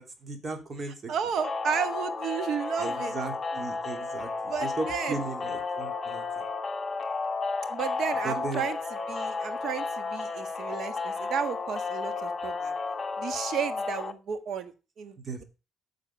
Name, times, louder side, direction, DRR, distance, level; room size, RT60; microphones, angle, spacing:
voice 1, 0.0-1.1 2.8-6.2 8.2-8.6 15.2-15.4, right 3 dB, 45° right, 5 dB, 3.1 m, -36 dB
voice 2, 1.1-3.1 4.5-5.1 7.7-8.8 9.1-12.7 13.2-15.4, right 7 dB, 70° right, 11 dB, 1.5 m, -33 dB
sound 1, 1.4-14.1, left 4 dB, 30° left, 1.2 m, -33 dB
9.8 x 6.4 x 5.5 m, 0.31 s
cardioid pair, 90°, 0 cm